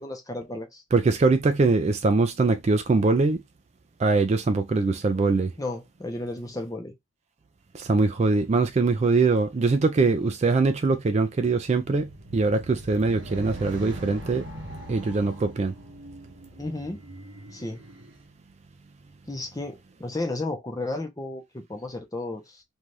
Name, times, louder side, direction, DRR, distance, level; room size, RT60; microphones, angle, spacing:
voice 1, 0.0-0.8 5.6-6.9 16.6-17.0 17.5-17.8 19.3-22.6, left 2 dB, 15° left, 0.6 m, -33 dB
voice 2, 0.9-3.4 4.0-5.5 7.7-14.4 14.9-15.7, right 3 dB, 35° right, 0.3 m, -22 dB
sound 1, 11.8-18.2, right 1 dB, 60° right, 0.8 m, -41 dB
2.7 x 2.3 x 3.1 m
head